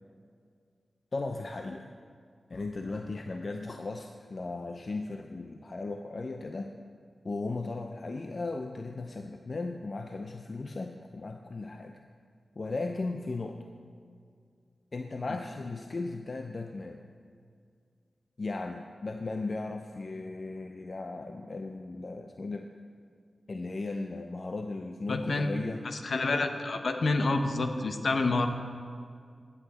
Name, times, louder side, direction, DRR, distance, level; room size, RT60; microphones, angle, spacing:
voice 1, 1.1-1.8 2.5-6.7 7.2-12.0 12.6-13.7 14.9-17.0 18.4-22.7 23.5-25.8, left 3 dB, 55° left, 4 dB, 0.6 m, -36 dB
voice 2, 25.1-25.5 26.0-28.5, left 3 dB, 70° left, 6 dB, 0.9 m, -28 dB
15.0 x 8.2 x 4.2 m, 2.2 s
cardioid pair, 50°, 0 cm